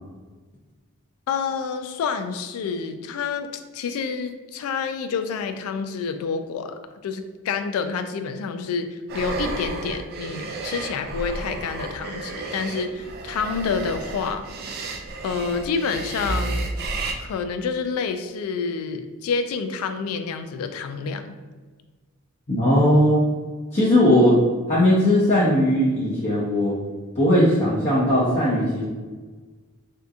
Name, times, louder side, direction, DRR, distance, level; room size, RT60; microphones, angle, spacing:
voice 1, 1.3-14.4 15.2-16.7 17.2-21.3, left 5 dB, 75° left, 11 dB, 0.3 m, -28 dB
sound 1, 9.1-17.1, right 3 dB, 45° right, 0.3 m, -32 dB
voice 2, 22.5-23.2 23.7-24.4 24.7-26.8 27.2-28.8, left 1 dB, 30° left, -8 dB, 0.6 m, -18 dB
3.5 x 2.7 x 2.4 m, 1.4 s
head